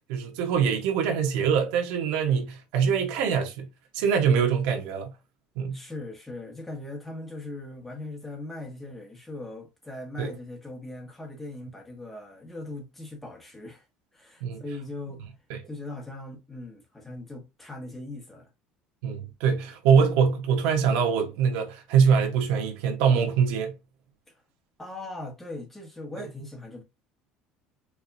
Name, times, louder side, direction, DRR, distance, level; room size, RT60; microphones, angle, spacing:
voice 1, 0.1-3.7 3.9-5.1 5.6-5.8 10.2-10.3 14.4-14.6 15.5-15.6 19.0-23.7, right 6 dB, 80° right, 1.0 m, -23 dB
voice 2, 5.7-13.9 14.1-15.2 15.6-18.5 24.8-26.8, left 2 dB, 5° left, 1.1 m, -39 dB
4.6 x 2.6 x 2.6 m
cardioid pair, 160°, 3 cm